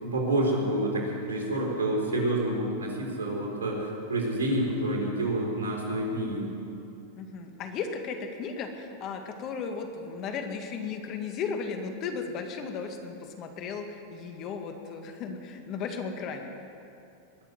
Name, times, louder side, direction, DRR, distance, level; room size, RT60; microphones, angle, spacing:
voice 1, 0.0-6.5, right 1 dB, 85° right, -1 dB, 3.8 m, -28 dB
voice 2, 7.2-16.5, left 5 dB, 45° left, 5 dB, 2.0 m, -35 dB
20.5 x 6.9 x 9.4 m, 2.7 s
hypercardioid pair, 100°, 0 cm